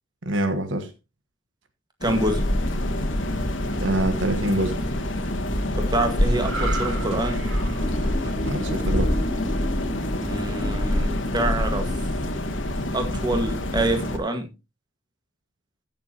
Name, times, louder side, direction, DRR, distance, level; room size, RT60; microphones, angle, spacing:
voice 1, 0.2-0.9 3.8-4.8 8.4-9.2, right 1 dB, 65° right, 1.3 m, -25 dB
sound 1, 2.0-14.2, left 1 dB, 65° left, 1.7 m, -26 dB
voice 2, 2.0-2.5 5.8-7.4 10.2-12.0 12.9-14.5, right 1 dB, 20° right, 1.8 m, -26 dB
sound 2, 6.3-9.8 10.2-10.5, right 3 dB, 85° right, 3.2 m, -36 dB
sound 3, 7.8-12.8, left 1 dB, 25° left, 1.0 m, -35 dB
15.0 x 7.0 x 2.9 m
head